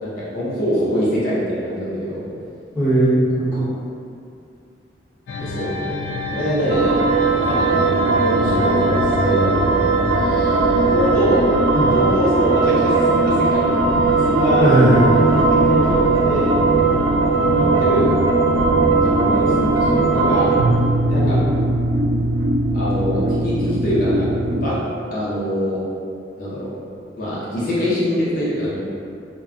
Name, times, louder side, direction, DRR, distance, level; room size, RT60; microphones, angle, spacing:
voice 1, 0.0-2.2 5.4-5.7 6.3-6.9 7.4-7.9 8.2-9.9 10.7-11.4 11.7-13.7 14.1-14.7 15.3-16.8 17.5-18.3 19.0-20.5 21.1-21.4 22.7-24.8 25.1-25.8 26.4-26.7 27.2-28.8, equal, 50° left, -8 dB, 0.7 m, -24 dB
voice 2, 2.7-3.7 10.3-10.5 11.7-11.9 14.6-15.3 21.2-21.4, right 1 dB, 20° right, -12 dB, 0.9 m, -17 dB
sound 1, 5.3-20.8, left 1 dB, 80° left, 0.3 m, -27 dB
sound 2, 6.7-24.7, right 3 dB, 80° right, 0.3 m, -19 dB
2.2 x 2.2 x 3.6 m, 2.4 s
head